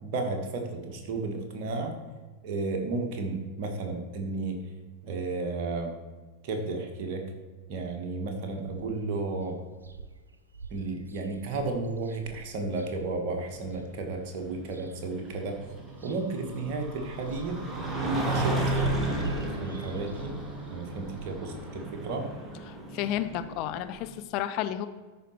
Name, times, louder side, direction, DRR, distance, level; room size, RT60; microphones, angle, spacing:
voice 1, 0.0-2.0 2.4-4.6 5.0-5.9 6.4-7.2 7.7-9.6 10.7-15.6 16.0-17.6 18.0-20.4 20.6-22.3, right 3 dB, 45° right, 3 dB, 1.6 m, -33 dB
sound 1, 8.5-9.1 9.5-9.6 9.8-13.8 14.4-15.2 15.5-21.4, right 3 dB, 75° right, 0.5 m, -42 dB
sound 2, 13.4-24.0, right 1 dB, 15° right, 1.6 m, -34 dB
voice 2, 22.7-24.9, left 11 dB, 40° left, 9 dB, 0.6 m, -32 dB
13.0 x 5.1 x 4.4 m, 1.3 s
figure-of-eight pair, 90°, 0 cm